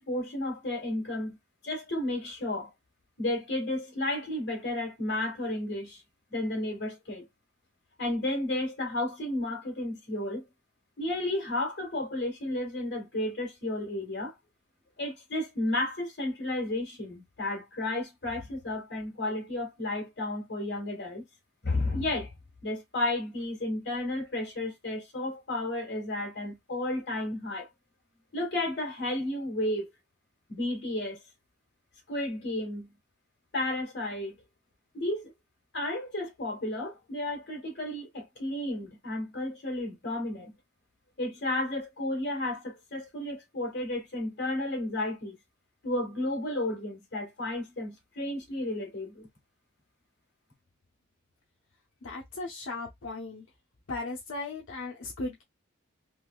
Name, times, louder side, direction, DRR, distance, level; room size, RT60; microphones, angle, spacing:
voice 1, 0.0-1.4 1.6-2.7 3.2-6.0 6.3-7.2 8.0-10.4 11.0-14.3 15.0-21.2 21.6-22.3 22.6-27.7 28.3-29.9 30.5-31.2 32.1-32.9 33.5-34.4 34.9-35.3 35.7-40.5 41.2-45.4 45.8-49.3, left 1 dB, 55° left, 1.8 m, -32 dB
voice 2, 52.0-53.5 53.9-55.4, left 3 dB, 80° left, 0.7 m, -37 dB
3.4 x 3.0 x 2.3 m
head